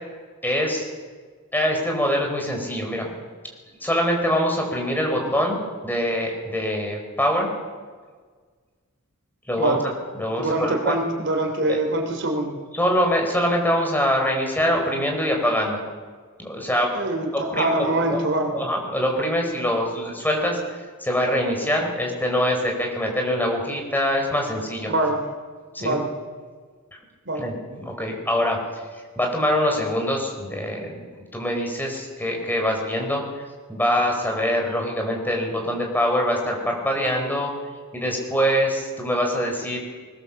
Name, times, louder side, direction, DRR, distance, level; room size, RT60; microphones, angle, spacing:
voice 1, 0.4-0.9 1.5-3.1 3.8-7.5 9.5-9.8 10.1-11.0 11.7-11.8 12.7-15.8 16.4-16.9 17.3-18.2 18.5-24.9 25.7-26.0 27.3-28.8 29.2-31.0 31.3-37.5 37.9-39.8, equal, 10° left, 1 dB, 4.8 m, -24 dB
voice 2, 10.4-12.6 16.9-18.5 24.8-25.2 25.8-26.1 27.2-27.4, right 2 dB, 60° right, 4 dB, 3.3 m, -24 dB
21.0 x 20.5 x 7.2 m, 1.5 s
head